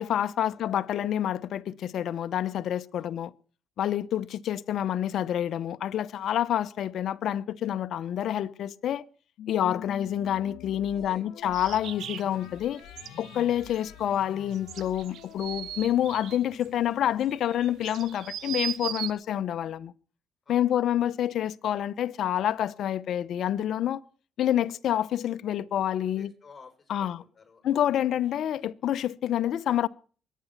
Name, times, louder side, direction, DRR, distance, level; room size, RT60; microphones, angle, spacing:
voice 1, 0.0-3.3 3.8-9.0 9.5-12.8 13.2-19.9 20.5-24.0 24.4-26.3 26.9-27.2 27.6-29.9, left 11 dB, 70° left, 0.8 m, -28 dB
sound 1, 9.4-18.1, left 10 dB, 90° left, 1.3 m, -47 dB
voice 2, 10.9-11.4 20.5-20.8 26.2-27.8, left 5 dB, 30° left, 7.3 m, -54 dB
sound 2, 11.5-19.1, right 11 dB, 80° right, 1.0 m, -38 dB
22.5 x 9.3 x 5.9 m
cardioid pair, 90°, 0 cm